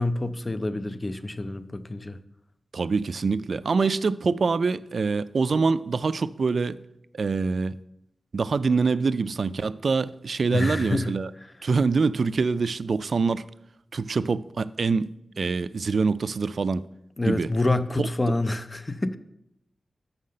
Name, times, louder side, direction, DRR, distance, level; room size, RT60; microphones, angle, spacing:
voice 1, 0.0-2.2 10.5-11.1 17.2-19.2, left 2 dB, 25° left, 0.4 m, -27 dB
voice 2, 2.7-6.8 7.1-7.8 8.3-11.3 11.6-13.4 13.9-15.1 15.4-16.8 17.2-17.5, right 4 dB, 60° right, 0.3 m, -25 dB
6.5 x 5.7 x 6.4 m
wide cardioid pair, 90°, 0 cm